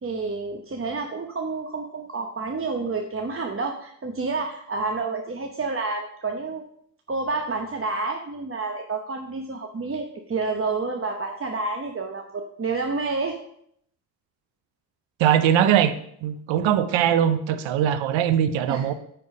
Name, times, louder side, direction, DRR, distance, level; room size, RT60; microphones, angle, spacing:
voice 1, 0.0-6.6 7.1-13.4 18.7-18.9, right 3 dB, 30° right, 3 dB, 0.9 m, -29 dB
voice 2, 15.2-18.9, right 10 dB, 80° right, 12 dB, 0.7 m, -21 dB
8.5 x 4.6 x 5.3 m, 0.69 s
supercardioid pair, 65°, 45 cm